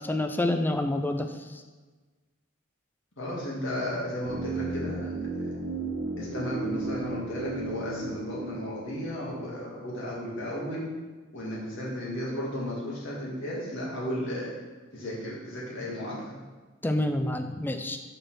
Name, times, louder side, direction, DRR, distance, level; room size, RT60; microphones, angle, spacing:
voice 1, 0.0-1.6 16.8-18.0, left 1 dB, 10° left, 7 dB, 0.4 m, -28 dB
voice 2, 3.2-5.1 6.2-10.9 11.3-14.5 14.9-16.3, equal, 65° left, -5 dB, 2.0 m, -34 dB
sound 1, 4.2-10.2 10.5-10.6, right 2 dB, 90° right, 1.4 m, -35 dB
5.0 x 4.4 x 6.1 m, 1.3 s
head